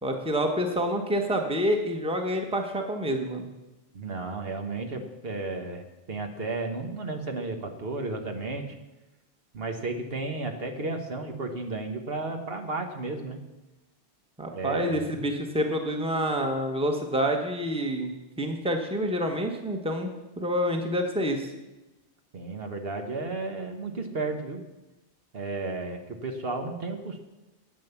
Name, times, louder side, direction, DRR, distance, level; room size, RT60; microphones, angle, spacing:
voice 1, 0.0-3.5 14.4-21.5, equal, 5° right, 4 dB, 1.2 m, -28 dB
voice 2, 3.9-8.8 9.5-13.4 14.5-15.2 22.3-24.6 25.3-27.2, right 3 dB, 60° right, 4 dB, 1.5 m, -33 dB
10.5 x 8.8 x 7.1 m, 1.0 s
omnidirectional pair, 1.1 m